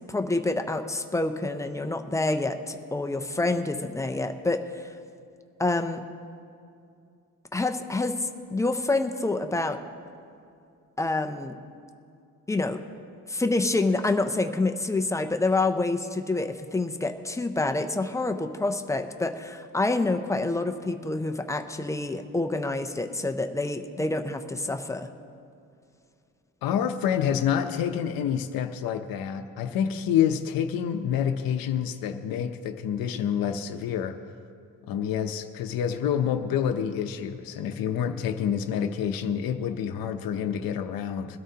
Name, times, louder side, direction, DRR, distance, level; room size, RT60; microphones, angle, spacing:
voice 1, 0.1-5.0 5.6-6.0 7.5-9.8 11.0-11.6 12.5-12.8 13.3-25.1, left 2 dB, 10° left, 6 dB, 0.4 m, -27 dB
voice 2, 26.6-34.2 34.9-41.4, left 8 dB, 85° left, 6 dB, 0.7 m, -28 dB
22.0 x 12.5 x 2.8 m, 2.4 s
cardioid pair, 170°, 34 cm